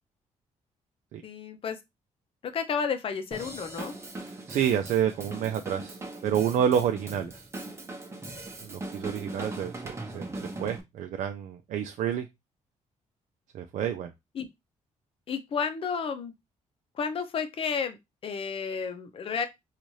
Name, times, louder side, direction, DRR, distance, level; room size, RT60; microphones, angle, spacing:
voice 1, 1.2-1.8 2.5-3.9 8.7-8.8 14.3-14.5 15.3-16.3 16.9-18.0 18.2-19.5, left 6 dB, 45° left, 0.6 m, -31 dB
Drum kit / Drum, 3.3-10.8, right 2 dB, 20° right, 0.8 m, -40 dB
voice 2, 4.2-7.5 8.6-10.3 10.6-12.3 13.5-14.1, right 9 dB, 70° right, 0.4 m, -29 dB
4.0 x 2.4 x 3.1 m
cardioid pair, 120°, 13 cm